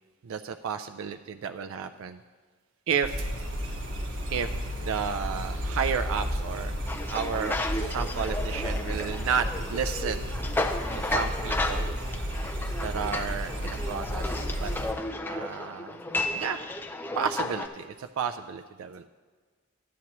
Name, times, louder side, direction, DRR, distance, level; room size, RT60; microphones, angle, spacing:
voice 1, 0.2-2.2 2.9-3.3 4.3-4.5 4.8-6.8 7.1-10.3 10.7-11.9 12.8-14.7 15.3-16.0 16.3-16.6 17.2-19.0, right 7 dB, 85° right, 8 dB, 0.3 m, -32 dB
sound 1, 3.0-14.9, equal, 60° right, 1.5 m, -33 dB
sound 2, 6.9-17.7, left 2 dB, 10° left, 0.3 m, -33 dB
13.0 x 9.4 x 3.0 m, 1.5 s
head